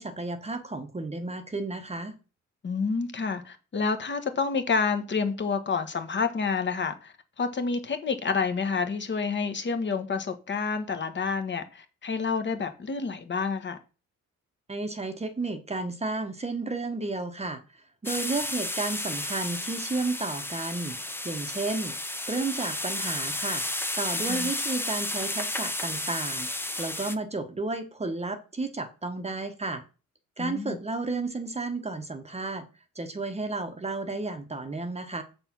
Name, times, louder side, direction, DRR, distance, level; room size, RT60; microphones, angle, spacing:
voice 1, 0.0-2.2 14.7-21.0 21.2-21.9 22.3-23.6 24.0-26.5 26.8-29.8 30.4-32.6 32.9-35.2, right 3 dB, 20° right, 1.0 m, -32 dB
voice 2, 2.6-13.8 24.2-24.5 30.4-30.8, left 5 dB, 35° left, 1.2 m, -29 dB
sound 1, 18.0-27.1, left 1 dB, 5° left, 0.7 m, -32 dB
6.9 x 4.2 x 5.9 m
cardioid pair, 90°, 30 cm